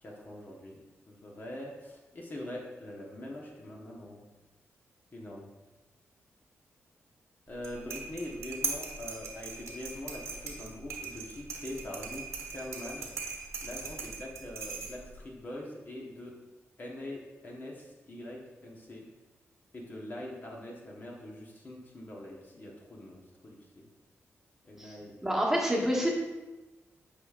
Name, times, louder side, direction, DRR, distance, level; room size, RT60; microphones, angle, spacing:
voice 1, 0.0-0.8 1.1-4.2 5.1-5.5 7.5-12.2 12.5-13.1 13.6-16.3 16.8-19.0 19.7-23.9 24.6-25.2, left 1 dB, 40° left, -2 dB, 1.0 m, -43 dB
sound 1, 7.5-15.2, right 5 dB, 75° right, 1.2 m, -40 dB
voice 2, 25.2-26.1, equal, 10° right, -3 dB, 1.3 m, -27 dB
8.5 x 4.9 x 2.4 m, 1.1 s
cardioid pair, 100°, 5 cm